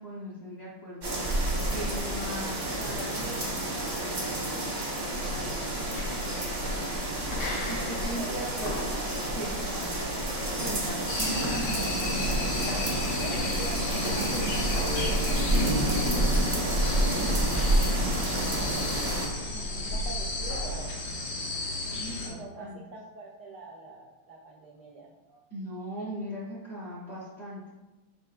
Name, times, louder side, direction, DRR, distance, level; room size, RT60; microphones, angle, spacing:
voice 1, 0.0-4.8 7.7-8.9 9.3-9.9 10.6-11.8 21.9-22.8 25.5-27.7, equal, 45° left, -8 dB, 0.8 m, -39 dB
sound 1, 1.0-19.3, right 1 dB, 45° right, 0.5 m, -29 dB
sound 2, 5.0-20.8, left 1 dB, 80° left, 1.9 m, -38 dB
voice 2, 7.7-9.0 9.7-9.9 12.2-12.7 13.0-17.0 18.1-21.0 22.2-25.4, right 3 dB, 85° right, -1 dB, 0.9 m, -45 dB
sound 3, 11.1-22.3, left 3 dB, 65° left, 1.8 m, -34 dB
4.8 x 4.4 x 2.4 m, 1.1 s
omnidirectional pair, 2.4 m